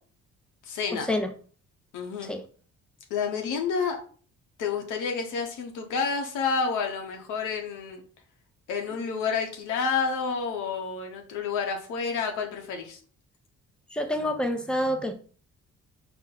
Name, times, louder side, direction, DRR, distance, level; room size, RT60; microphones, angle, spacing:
voice 1, 0.7-1.1 1.9-2.3 3.1-4.0 4.6-8.0 8.7-13.0, left 5 dB, 85° left, 0.8 m, -29 dB
voice 2, 13.9-15.1, left 1 dB, 5° left, 0.5 m, -27 dB
4.2 x 2.1 x 3.7 m
cardioid pair, 90°, 30 cm